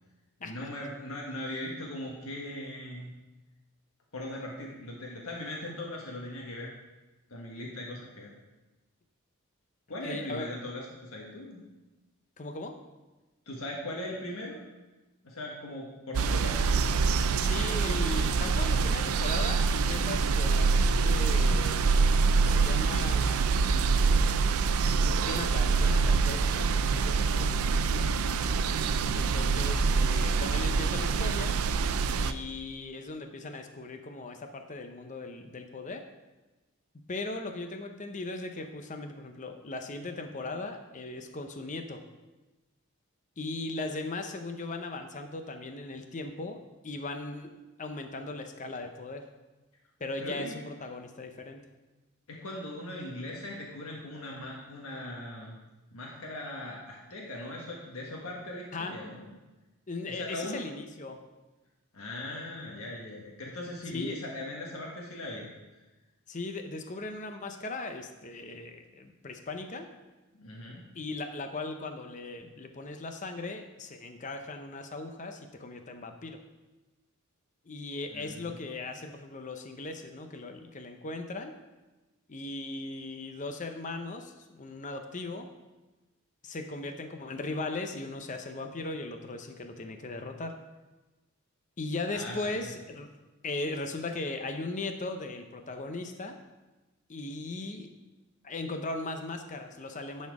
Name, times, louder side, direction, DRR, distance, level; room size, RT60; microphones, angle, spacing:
voice 1, 0.4-3.1 4.1-6.7 7.3-8.3 9.9-11.6 13.5-14.6 15.2-16.8 29.2-30.1 50.2-50.6 52.3-55.6 55.9-59.3 60.1-60.7 61.9-65.5 70.3-70.9 78.1-78.7 92.1-92.6, left 1 dB, 80° left, -2 dB, 1.4 m, -39 dB
voice 2, 10.0-10.5 12.4-12.7 17.3-21.8 22.4-23.7 25.2-26.7 26.9-27.8 29.1-31.6 32.2-36.0 37.1-42.0 43.4-46.6 46.8-47.5 47.8-49.2 50.0-51.6 58.7-58.9 59.9-61.2 63.9-64.2 66.3-69.9 70.9-76.4 77.7-81.5 82.3-85.5 86.4-90.5 91.8-93.1 93.4-96.4 97.1-97.9 98.4-100.3, left 2 dB, 35° left, 5 dB, 0.7 m, -38 dB
sound 1, 16.1-32.3, right 4 dB, 85° right, 0.4 m, -25 dB
10.5 x 4.3 x 4.8 m, 1.1 s
head